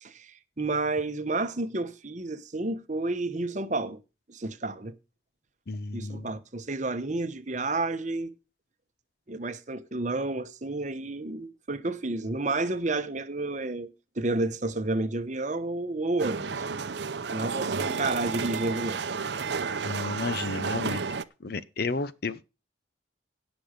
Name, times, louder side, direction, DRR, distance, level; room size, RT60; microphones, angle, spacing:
voice 1, 0.0-4.0 4.3-4.9 5.9-8.3 9.3-13.9 14.2-16.7 17.3-19.0, right 2 dB, 40° right, 0.9 m, -30 dB
voice 2, 5.7-6.3 19.8-21.0 21.4-22.5, left 3 dB, 50° left, 0.7 m, -32 dB
sound 1, 16.2-21.2, right 5 dB, 60° right, 0.6 m, -31 dB
17.0 x 6.1 x 5.1 m
head